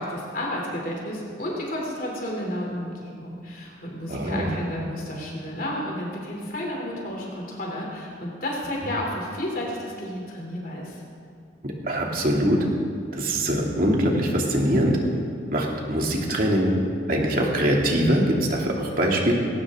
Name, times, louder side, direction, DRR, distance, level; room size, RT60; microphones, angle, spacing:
voice 1, 0.0-11.0, left 1 dB, 50° left, -2 dB, 3.2 m, -31 dB
voice 2, 4.1-4.5 11.6-12.6 13.1-15.0 15.5-16.7 17.1-19.3, equal, 50° right, -1 dB, 2.6 m, -23 dB
19.5 x 17.5 x 3.7 m, 2.2 s
head